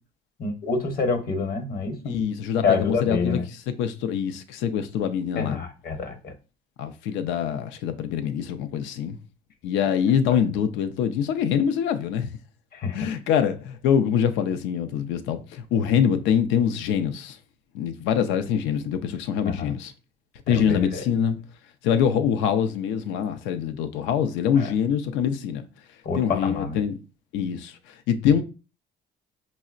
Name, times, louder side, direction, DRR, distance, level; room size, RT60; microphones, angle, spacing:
voice 1, 0.4-2.2 2.6-3.5 5.4-6.3 10.3-10.4 12.7-13.2 19.5-19.7 20.5-21.0 24.6-24.7 26.0-26.8, left 4 dB, 50° left, 1.0 m, -27 dB
voice 2, 2.0-3.4 3.8-5.6 6.8-9.2 9.6-12.3 12.9-17.4 17.7-19.9 20.5-21.4 21.8-25.6 26.2-26.9 27.3-27.7 28.1-28.4, left 8 dB, 80° left, 0.5 m, -24 dB
5.5 x 2.0 x 2.4 m
supercardioid pair, 80°, 19 cm